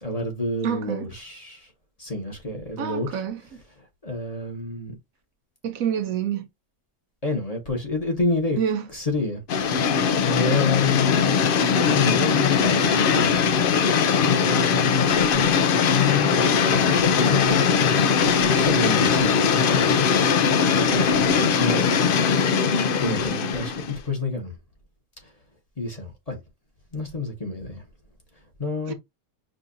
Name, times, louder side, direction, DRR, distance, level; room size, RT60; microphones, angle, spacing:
voice 1, 0.0-1.7 2.0-3.2 4.0-4.9 7.2-8.6 8.9-9.9 10.2-11.2 11.9-13.6 14.2-15.5 15.9-16.4 16.7-17.9 18.2-20.5 20.9-21.9 23.0-24.5 25.8-26.4 26.9-27.8 28.6-28.9, left 3 dB, 30° left, 1.1 m, -28 dB
voice 2, 0.6-1.1 2.8-3.4 5.6-6.5 8.6-8.9 28.9-29.0, right 8 dB, 80° right, 1.1 m, -27 dB
sound 1, 9.5-24.0, left 6 dB, 70° left, 0.5 m, -20 dB
5.2 x 2.6 x 2.5 m
omnidirectional pair, 1.5 m